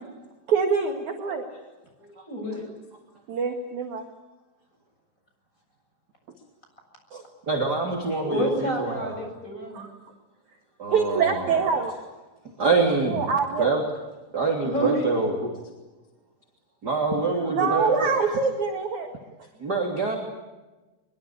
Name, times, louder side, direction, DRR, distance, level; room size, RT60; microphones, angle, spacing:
voice 1, 0.5-1.4 3.3-4.1 7.1-7.2 9.7-9.9 10.9-11.9 13.1-13.7 17.5-19.1, right 5 dB, 50° right, 3 dB, 2.7 m, -25 dB
voice 2, 2.3-2.6 8.2-9.8 14.6-15.2, equal, 15° left, 2 dB, 7.6 m, -28 dB
voice 3, 7.5-9.2 10.8-11.6 12.6-13.3 13.6-13.8 14.3-15.5 16.8-18.1 19.6-20.2, right 3 dB, 25° right, 1 dB, 3.1 m, -25 dB
24.0 x 24.0 x 8.7 m, 1.1 s
omnidirectional pair, 5.1 m